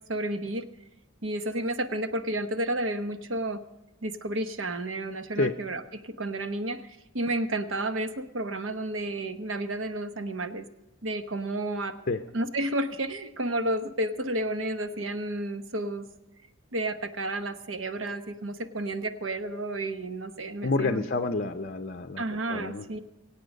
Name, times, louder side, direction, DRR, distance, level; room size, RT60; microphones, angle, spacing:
voice 1, 0.1-0.6 1.2-3.6 4.0-6.9 7.1-10.6 11.0-11.9 12.3-16.1 16.7-21.0 22.2-23.0, right 1 dB, 65° right, 9 dB, 0.9 m, -31 dB
voice 2, 20.6-22.8, left 3 dB, 45° left, 6 dB, 0.6 m, -28 dB
24.0 x 8.4 x 5.2 m, 1.0 s
head